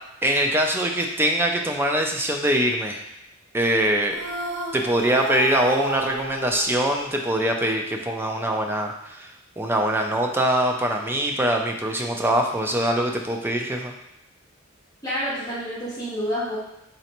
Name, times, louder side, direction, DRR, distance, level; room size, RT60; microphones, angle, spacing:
voice 1, 0.2-3.0 3.5-4.2 4.7-13.9, right 1 dB, 10° right, 2 dB, 0.3 m, -23 dB
sound 1, 4.1-7.5, right 1 dB, 55° right, 1.1 m, -32 dB
voice 2, 15.0-16.6, equal, 15° left, -10 dB, 0.9 m, -28 dB
4.0 x 3.3 x 2.9 m, 0.81 s
head